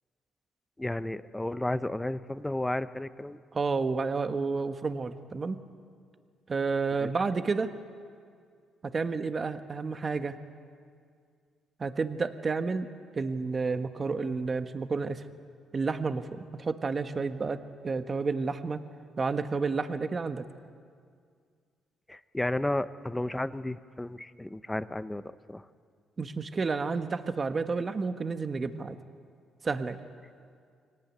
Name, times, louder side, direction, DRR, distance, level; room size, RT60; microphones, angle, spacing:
voice 1, 0.8-3.4 7.0-7.1 22.1-25.2 25.5-25.6, left 1 dB, 10° left, 13 dB, 0.9 m, -32 dB
voice 2, 3.5-5.6 6.5-7.7 8.8-10.4 11.8-12.9 13.1-15.2 15.7-18.8 19.2-20.4 26.2-29.0 29.6-30.0, right 4 dB, 40° right, 9 dB, 1.4 m, -30 dB
24.0 x 18.0 x 9.4 m, 2.2 s
cardioid pair, 75°, 0 cm